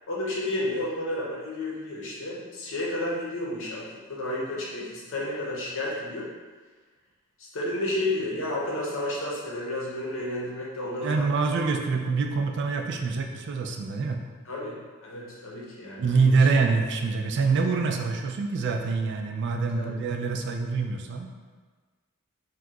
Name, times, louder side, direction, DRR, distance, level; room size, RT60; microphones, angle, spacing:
voice 1, 0.1-6.3 7.4-11.3 11.6-11.7 14.4-14.8 15.0-16.5 19.7-19.9, left 1 dB, 65° left, -4 dB, 0.8 m, -31 dB
voice 2, 11.0-14.2 16.0-21.3, right 4 dB, 55° right, 4 dB, 0.3 m, -25 dB
2.8 x 2.3 x 3.6 m, 1.4 s
head